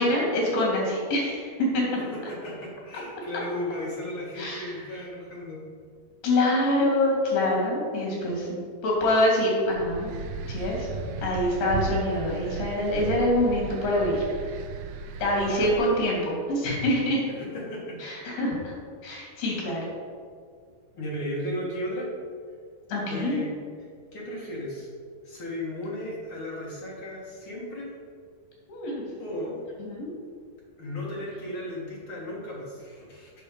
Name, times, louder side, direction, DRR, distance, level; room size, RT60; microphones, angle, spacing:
voice 1, 0.0-2.0 4.4-4.9 6.2-10.1 10.5-10.9 11.2-14.2 15.2-16.2 16.5-17.3 18.0-18.7 19.0-19.8 22.9-23.4 28.7-29.0 29.8-30.1, left 1 dB, 85° left, -3 dB, 4.3 m, -25 dB
voice 2, 2.0-5.6 15.4-16.2 17.3-18.0 20.9-22.1 23.1-23.5 23.8-24.9 25.2-27.9 29.2-29.6 30.8-33.3, left 1 dB, 45° left, -4 dB, 1.9 m, -35 dB
sound 1, 9.7-15.8, right 3 dB, 80° right, 2.0 m, -35 dB
8.5 x 5.8 x 5.1 m, 2.1 s
omnidirectional pair, 4.3 m